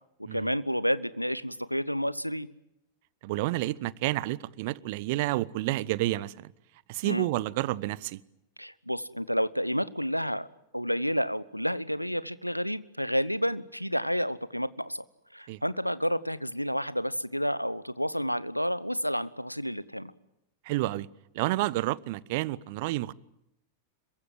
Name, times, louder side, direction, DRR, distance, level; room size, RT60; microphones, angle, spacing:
voice 1, 0.3-2.5 7.0-7.3 8.6-10.5 10.7-15.0 15.3-20.1, equal, 90° left, 1.0 m, -30 dB
voice 2, 3.2-6.5 6.9-8.2 15.5-15.6 20.6-21.1 21.3-23.1, right 18 dB, 50° right, 0.9 m, -30 dB
26.5 x 23.0 x 7.6 m
figure-of-eight pair, 90°, 0 cm